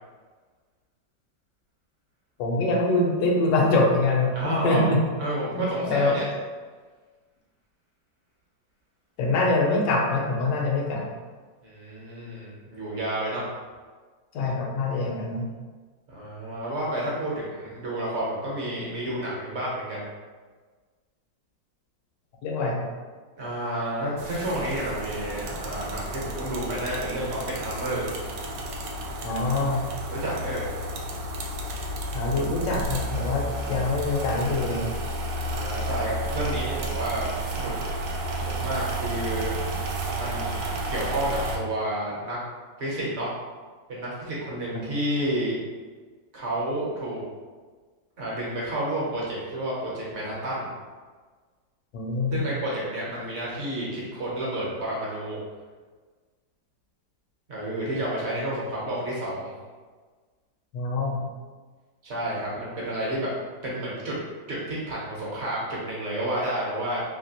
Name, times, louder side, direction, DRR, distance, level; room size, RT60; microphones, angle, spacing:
voice 1, 2.4-5.0 5.5-6.1 9.2-11.1 14.3-15.5 22.4-22.8 29.2-29.8 32.1-34.9 44.7-44.8 51.9-52.4 60.7-61.2, left 2 dB, 80° left, -1 dB, 1.3 m, -24 dB
voice 2, 4.3-4.8 5.2-6.2 11.6-13.5 16.1-20.1 23.4-28.1 30.1-30.7 35.3-37.3 37.6-37.7 38.4-39.5 40.2-40.6 40.9-42.4 42.8-43.3 43.9-45.6 46.3-47.2 48.2-50.7 52.3-55.4 57.5-59.5 62.0-63.3 63.6-64.2 64.5-67.0, right 1 dB, 50° right, -6 dB, 0.9 m, -30 dB
sound 1, 24.2-41.6, right 1 dB, 80° right, 1.2 m, -32 dB
3.1 x 2.8 x 2.8 m, 1.4 s
omnidirectional pair, 2.0 m